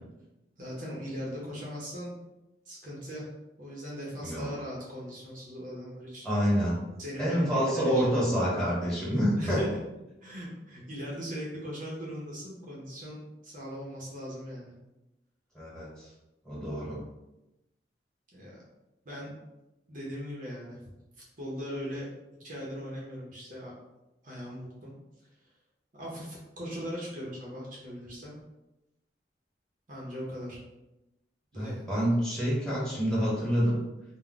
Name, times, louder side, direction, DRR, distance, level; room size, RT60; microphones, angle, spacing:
voice 1, 0.6-2.1 2.7-3.3 3.6-6.3 7.0-8.1 9.4-9.8 10.2-14.7 18.3-18.6 19.0-19.4 19.9-20.8 21.4-22.1 22.4-23.7 24.2-24.9 25.9-28.3 29.9-30.6 31.5-31.9, equal, 45° right, -4 dB, 0.7 m, -39 dB
voice 2, 6.2-6.8 7.2-9.7 15.5-16.1 16.4-17.0 31.5-33.8, equal, 5° left, -7 dB, 1.1 m, -27 dB
2.3 x 2.1 x 3.7 m, 0.96 s
head